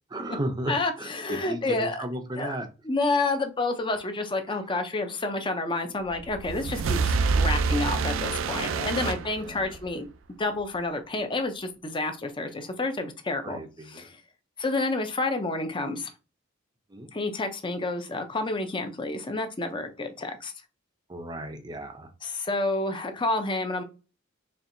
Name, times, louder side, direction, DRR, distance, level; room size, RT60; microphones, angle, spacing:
voice 1, 0.1-2.7 8.5-9.8 13.4-14.0 16.9-17.1 21.1-22.1, right 1 dB, 20° right, 7 dB, 0.5 m, -35 dB
voice 2, 0.7-2.0 2.4-2.6 2.8-10.1 10.4-13.6 13.9-14.2 14.6-16.1 17.1-20.5 22.2-23.8, left 2 dB, 25° left, 7 dB, 0.6 m, -29 dB
sound 1, 6.1-9.9, right 4 dB, 85° right, 0.4 m, -27 dB
4.4 x 3.1 x 2.6 m, 0.31 s
head